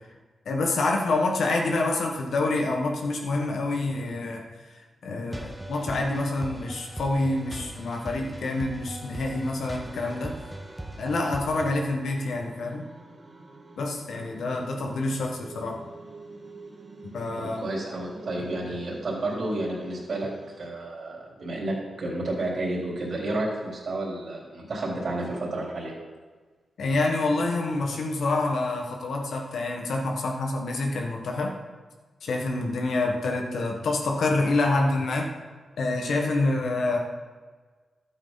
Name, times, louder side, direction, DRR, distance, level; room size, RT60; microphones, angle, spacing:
voice 1, 0.4-10.3 11.0-12.9 13.8-15.8 17.1-17.6 18.6-18.7 26.8-31.5 32.2-35.3 35.8-37.0, left 2 dB, 80° left, 1 dB, 1.6 m, -27 dB
sound 1, 5.3-11.8, right 1 dB, 15° right, 1.1 m, -40 dB
sound 2, 9.6-20.7, right 3 dB, 40° right, 2.4 m, -47 dB
voice 2, 17.4-20.3 20.6-25.9, right 2 dB, 60° right, -3 dB, 3.8 m, -31 dB
12.0 x 8.7 x 4.1 m, 1.4 s
cardioid pair, 85°, 0 cm